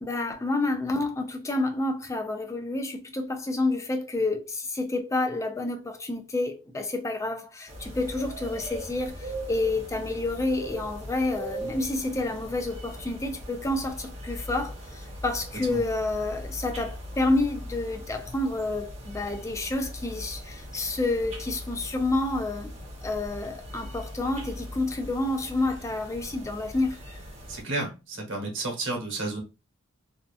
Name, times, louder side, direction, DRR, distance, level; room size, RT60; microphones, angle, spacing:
voice 1, 0.0-22.7 23.0-27.0, left 2 dB, 15° left, 0.4 m, -29 dB
sound 1, 7.7-27.6, equal, 30° right, 0.8 m, -40 dB
voice 2, 27.5-29.4, right 2 dB, 60° right, 1.1 m, -31 dB
2.7 x 2.3 x 2.3 m
head